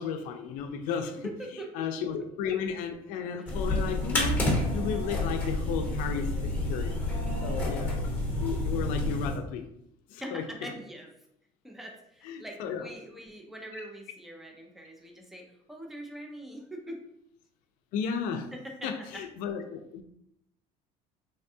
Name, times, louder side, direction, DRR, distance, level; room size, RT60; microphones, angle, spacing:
voice 1, 0.0-4.5 4.7-7.0 7.4-8.0 8.4-9.6 10.1-10.7 12.2-12.9 13.8-13.9 17.9-18.5 18.8-20.0, left 7 dB, 75° left, 7 dB, 0.4 m, -34 dB
voice 2, 1.2-1.7 3.4-3.5 10.2-11.1 11.6-17.0 18.5-19.2, right 1 dB, ahead, 1 dB, 0.4 m, -43 dB
sound 1, 3.5-9.4, left 1 dB, 15° left, 0.9 m, -29 dB
3.4 x 2.2 x 2.6 m, 0.76 s
cardioid pair, 160°, 14 cm